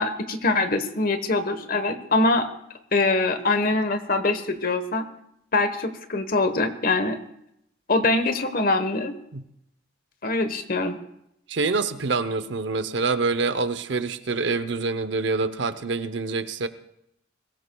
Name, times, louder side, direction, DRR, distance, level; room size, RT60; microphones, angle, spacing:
voice 1, 0.0-2.5 2.9-5.0 5.5-7.2 7.9-9.1 10.2-11.0, left 3 dB, 45° left, 9 dB, 1.1 m, -23 dB
voice 2, 11.5-16.7, right 4 dB, 65° right, 12 dB, 0.7 m, -26 dB
22.5 x 17.0 x 2.3 m, 0.78 s
head